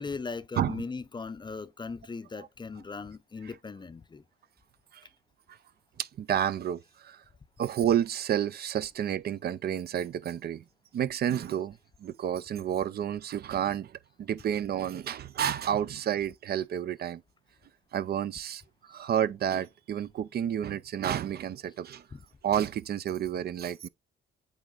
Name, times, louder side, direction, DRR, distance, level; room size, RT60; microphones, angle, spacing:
voice 1, 0.0-4.2 18.9-19.0 22.1-22.2, left 4 dB, 25° left, 0.5 m, -38 dB
voice 2, 6.0-7.2 7.6-10.6 10.9-17.2 17.9-22.1 22.4-23.9, right 10 dB, 55° right, 0.4 m, -30 dB
8.2 x 3.1 x 3.8 m
cardioid pair, 90°, 20 cm